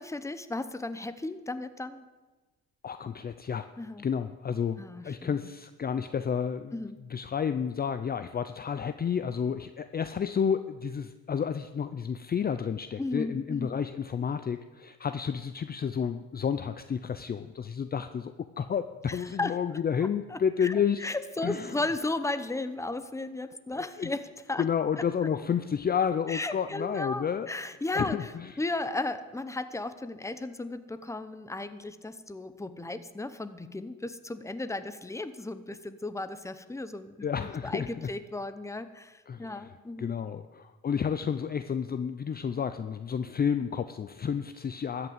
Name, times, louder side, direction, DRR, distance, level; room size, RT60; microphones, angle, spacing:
voice 1, 0.0-2.0 3.8-4.1 4.8-5.3 6.7-7.0 13.0-13.8 19.1-19.5 20.3-24.6 26.3-40.2, left 2 dB, 10° left, 11 dB, 0.9 m, -35 dB
voice 2, 2.8-3.7 4.0-6.7 7.1-21.1 21.4-21.8 24.0-24.1 24.6-27.5 27.9-28.5 37.2-38.1 39.3-39.5 40.0-45.1, left 7 dB, 30° left, 10 dB, 0.5 m, -31 dB
13.5 x 6.0 x 9.4 m, 1.2 s
cardioid pair, 90°, 30 cm